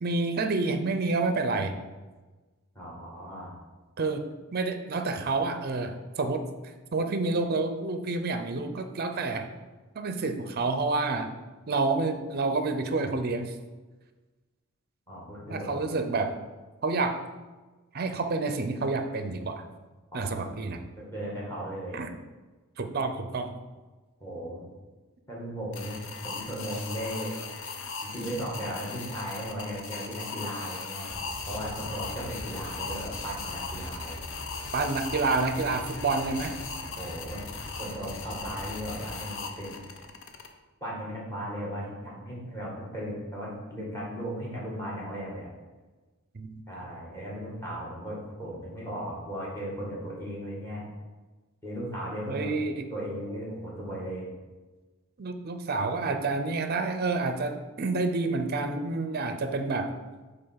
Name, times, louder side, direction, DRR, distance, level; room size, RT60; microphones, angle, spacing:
voice 1, 0.0-1.7 4.0-4.2 4.5-6.4 6.9-9.5 9.9-11.3 11.7-13.5 15.5-16.3 16.8-17.2 17.9-19.6 20.1-20.8 21.9-22.1 22.8-23.5 34.7-36.6 46.3-46.6 52.3-52.8 55.2-60.0, right 3 dB, 45° right, 8 dB, 0.6 m, -28 dB
voice 2, 2.7-3.5 15.1-15.8 20.1-20.4 21.0-22.0 24.2-24.7 25.3-27.3 28.0-31.2 31.5-34.2 37.0-37.5 37.8-39.9 40.8-45.5 46.7-50.8 51.6-52.5 52.9-54.3, equal, 15° left, -5 dB, 2.0 m, -36 dB
sound 1, 25.7-40.5, left 5 dB, 60° left, 0.6 m, -39 dB
sound 2, 31.1-39.1, equal, 30° left, 1.2 m, -43 dB
5.4 x 4.0 x 5.7 m, 1.2 s
head